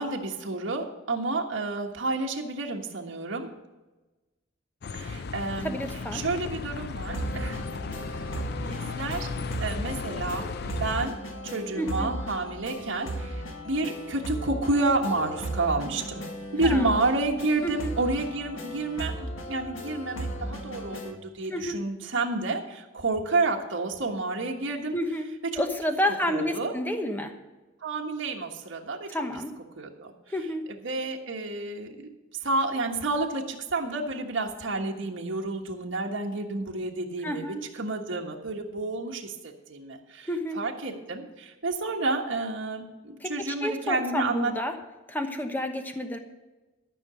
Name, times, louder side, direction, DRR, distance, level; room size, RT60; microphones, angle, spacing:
voice 1, 0.0-3.5 4.9-5.8 6.1-8.0 8.6-9.3 9.6-11.2 11.4-16.2 16.5-25.0 25.5-25.6 26.3-26.7 27.8-29.1 29.8-30.1 30.8-32.1 32.4-40.3 40.5-44.5, right 2 dB, 75° right, 0 dB, 1.4 m, -30 dB
Bus, 4.8-11.1, left 4 dB, 55° left, 0.5 m, -35 dB
voice 2, 5.6-6.2 11.8-12.1 16.6-16.9 17.6-17.9 21.5-21.8 24.9-25.3 25.6-27.3 29.1-29.5 30.3-30.6 37.2-37.6 40.3-40.6 43.2-44.7 45.1-46.2, left 1 dB, 10° left, 5 dB, 1.0 m, -30 dB
sound 1, 7.1-21.1, right 1 dB, 90° left, 1.9 m, -36 dB
13.0 x 5.9 x 7.8 m, 1.1 s
head